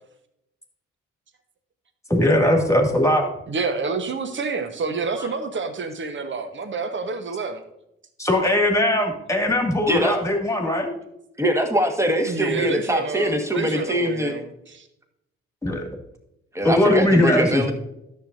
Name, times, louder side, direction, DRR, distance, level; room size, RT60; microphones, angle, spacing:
voice 1, 2.1-3.3 8.2-10.9 15.6-15.9 16.6-17.7, left 1 dB, 10° left, 2 dB, 2.3 m, -20 dB
voice 2, 3.5-7.6 12.2-14.9, right 4 dB, 35° right, 8 dB, 1.2 m, -28 dB
voice 3, 9.9-10.2 11.4-14.3 16.5-17.7, equal, 10° right, 4 dB, 1.7 m, -23 dB
13.0 x 6.7 x 2.7 m, 0.82 s
hypercardioid pair, 40°, 33 cm